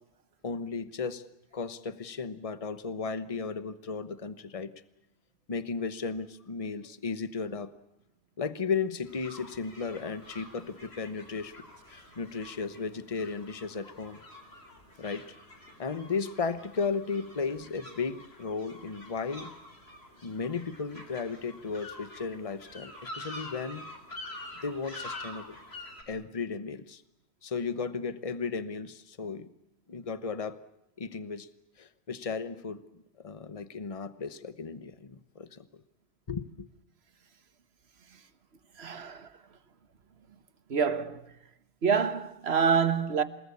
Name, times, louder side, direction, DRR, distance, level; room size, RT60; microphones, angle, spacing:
voice 1, 0.4-1.2 1.5-4.7 5.5-7.7 8.4-11.6 11.9-14.2 15.0-15.2 15.8-19.5 20.2-23.9 24.6-25.6 26.1-27.0 27.4-29.5 29.9-30.6 31.0-31.5 31.8-32.8 33.2-35.7 36.3-36.7, left 5 dB, 35° left, 1.1 m, -35 dB
sound 1, 9.1-26.0, left 1 dB, 70° left, 4.3 m, -47 dB
voice 2, 38.8-39.3 40.7-41.3 41.8-43.2, right 6 dB, 75° right, 1.5 m, -26 dB
28.0 x 19.0 x 8.5 m
omnidirectional pair, 1.1 m